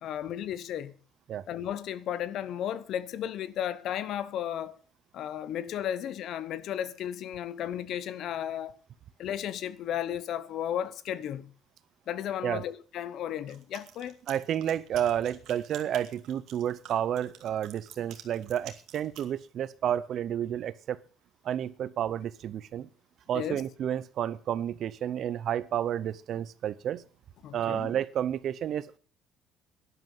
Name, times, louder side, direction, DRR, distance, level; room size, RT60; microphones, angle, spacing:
voice 1, 0.0-0.9 1.5-4.8 5.1-8.7 9.2-11.5 12.1-14.2 23.3-23.6 27.4-27.9, left 10 dB, 50° left, 0.9 m, -34 dB
sound 1, 13.5-19.3, right 10 dB, 60° right, 2.3 m, -49 dB
voice 2, 14.3-21.0 21.4-22.9 23.3-27.0 27.5-29.0, right 10 dB, 45° right, 0.7 m, -31 dB
11.5 x 11.0 x 7.3 m
cardioid pair, 175°, 0 cm